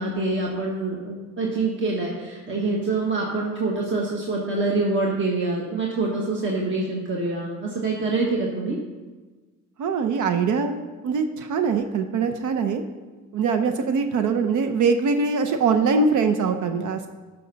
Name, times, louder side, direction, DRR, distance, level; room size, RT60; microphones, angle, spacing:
voice 1, 0.0-8.8, right 3 dB, 40° right, -2 dB, 1.5 m, -25 dB
voice 2, 9.8-10.8 11.0-12.8 13.3-17.1, right 5 dB, 75° right, 7 dB, 0.7 m, -22 dB
11.5 x 5.8 x 4.0 m, 1.3 s
cardioid pair, 90°, 30 cm